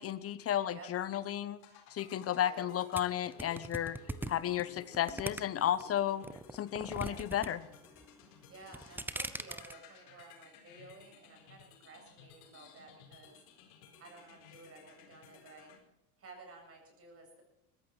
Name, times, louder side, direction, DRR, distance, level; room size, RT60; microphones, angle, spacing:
voice 1, 0.0-1.6 1.9-4.0 4.3-6.2 6.5-7.6, left 11 dB, 30° left, 16 dB, 1.0 m, -33 dB
sound 1, 1.6-15.8, left 7 dB, 75° left, 4.4 m, -57 dB
sound 2, 3.0-5.8 6.2-7.5 7.8-8.2 8.6-9.7, right 2 dB, 5° right, 0.7 m, -40 dB
voice 2, 6.9-7.3 8.5-13.4 14.0-15.7 16.2-17.4, right 3 dB, 30° right, 3 dB, 7.5 m, -54 dB
21.0 x 14.5 x 4.6 m, 0.86 s
supercardioid pair, 120°, 45 cm